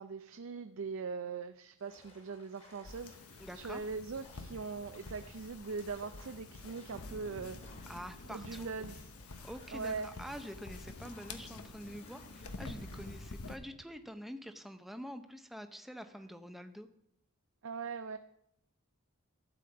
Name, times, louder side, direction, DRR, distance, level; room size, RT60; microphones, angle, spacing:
voice 1, 0.0-7.6 8.3-9.1 9.7-10.1 17.6-18.2, right 4 dB, 60° right, 9 dB, 0.4 m, -41 dB
sound 1, 1.8-13.3, left 2 dB, 30° left, 2.4 m, -61 dB
sound 2, 2.8-13.6, left 3 dB, 85° left, 1.0 m, -49 dB
voice 2, 3.4-3.8 7.9-8.7 9.4-16.9, equal, ahead, 8 dB, 0.6 m, -46 dB
sound 3, 6.9-13.5, left 1 dB, 55° left, 1.0 m, -55 dB
12.5 x 5.0 x 7.9 m, 0.79 s
head